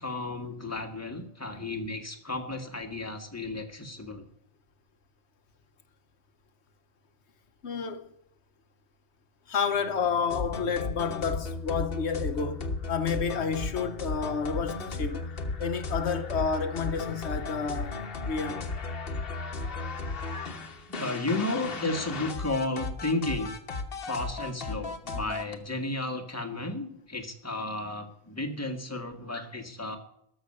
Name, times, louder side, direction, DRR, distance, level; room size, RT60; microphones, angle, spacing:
voice 1, 0.0-4.2 20.9-23.5 24.0-30.0, left 2 dB, 15° left, 1.7 m, -33 dB
voice 2, 7.6-8.0 9.5-15.3 15.6-18.0 18.2-18.7, left 6 dB, 85° left, 1.3 m, -30 dB
sound 1, 10.3-25.6, left 3 dB, 60° left, 1.4 m, -35 dB
13.0 x 6.4 x 9.6 m
omnidirectional pair, 1.1 m